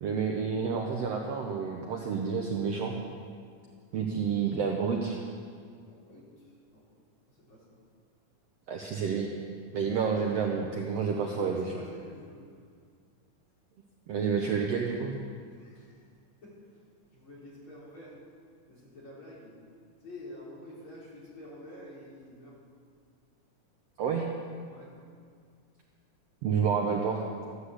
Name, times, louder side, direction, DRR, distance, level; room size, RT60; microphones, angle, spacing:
voice 1, 0.0-2.9 3.9-5.2 8.7-9.3 9.7-11.7 14.1-15.2 24.0-24.3 26.4-27.2, right 6 dB, 65° right, 1 dB, 1.7 m, -29 dB
voice 2, 5.7-6.8 7.3-7.8 11.3-12.4 15.5-16.1 16.4-16.8 17.1-18.2 18.7-19.5 20.0-22.6 24.6-24.9, left 1 dB, 40° left, -7 dB, 4.7 m, -49 dB
13.5 x 9.8 x 8.2 m, 2.1 s
omnidirectional pair, 3.7 m